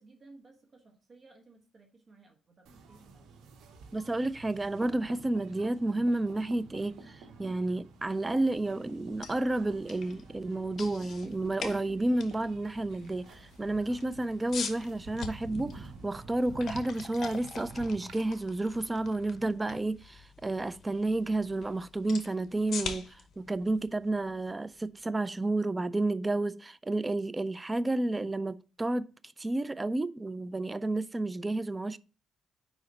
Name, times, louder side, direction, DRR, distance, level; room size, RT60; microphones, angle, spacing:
voice 1, 0.0-3.3, right 3 dB, 40° right, 1.2 m, -57 dB
sound 1, 2.6-18.2, right 4 dB, 80° right, 1.0 m, -50 dB
voice 2, 3.9-29.1 29.4-32.0, right 2 dB, 20° right, 0.3 m, -31 dB
sound 2, 9.0-24.9, left 6 dB, 55° left, 0.9 m, -45 dB
4.9 x 4.0 x 5.1 m
cardioid pair, 90°, 0 cm